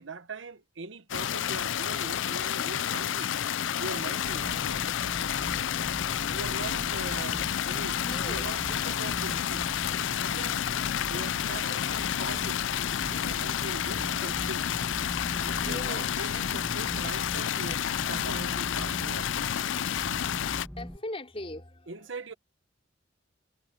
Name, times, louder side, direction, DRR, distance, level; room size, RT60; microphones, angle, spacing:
voice 1, 0.0-3.3 3.8-5.1 6.3-9.7 10.0-10.6 11.1-12.6 13.0-14.9 15.2-19.3 21.9-22.3, right 3 dB, 85° right, 1.2 m, -41 dB
sound 1, 1.1-20.7, left 10 dB, 90° left, 0.4 m, -30 dB
sound 2, 4.2-21.0, equal, ahead, 1.6 m, -41 dB
voice 2, 8.0-8.5 15.6-17.3 20.8-22.1, left 1 dB, 30° left, 3.6 m, -41 dB
head